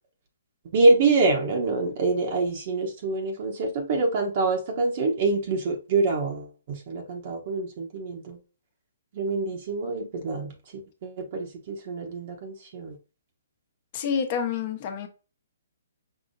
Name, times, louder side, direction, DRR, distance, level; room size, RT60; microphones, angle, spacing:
voice 1, 0.7-8.4 9.1-13.0, right 3 dB, 45° right, 0.9 m, -25 dB
voice 2, 13.9-15.1, left 7 dB, 35° left, 0.9 m, -28 dB
5.5 x 2.8 x 2.6 m
hypercardioid pair, 150°, 0 cm